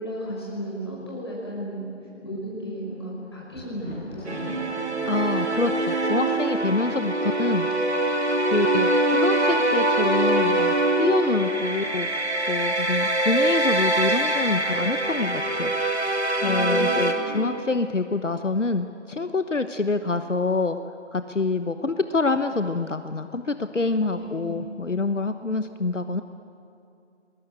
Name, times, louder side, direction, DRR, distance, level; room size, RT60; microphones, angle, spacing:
voice 1, 0.0-1.9 2.2-4.6 16.4-17.5 24.1-24.6, equal, 20° left, -6 dB, 5.9 m, -34 dB
Thunder, 2.5-7.6 8.3-8.8 9.1-9.2, equal, 5° left, 7.4 m, -45 dB
sound 1, 4.3-17.1, right 2 dB, 60° right, 3.0 m, -23 dB
voice 2, 5.1-7.7 8.5-12.1 12.5-15.7 16.4-20.8 21.1-26.2, left 3 dB, 75° left, 9 dB, 1.2 m, -26 dB
28.5 x 21.0 x 8.1 m, 2.6 s
figure-of-eight pair, 175°, 37 cm